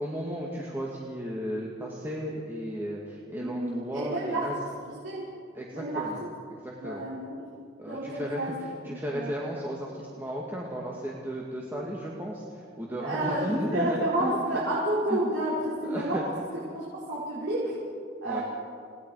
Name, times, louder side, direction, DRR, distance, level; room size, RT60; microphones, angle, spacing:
voice 1, 0.0-4.6 5.5-6.2 6.6-7.1 7.8-14.4 15.1-15.2 15.8-16.2 18.3-18.4, equal, 10° right, -4 dB, 2.1 m, -34 dB
voice 2, 3.3-4.4 5.0-5.3 5.7-6.1 6.8-7.4 7.9-8.5 8.8-9.3 13.0-16.2 16.7-17.8 18.2-18.4, right 1 dB, 75° right, -8 dB, 5.5 m, -30 dB
29.5 x 19.5 x 4.9 m, 2.4 s
head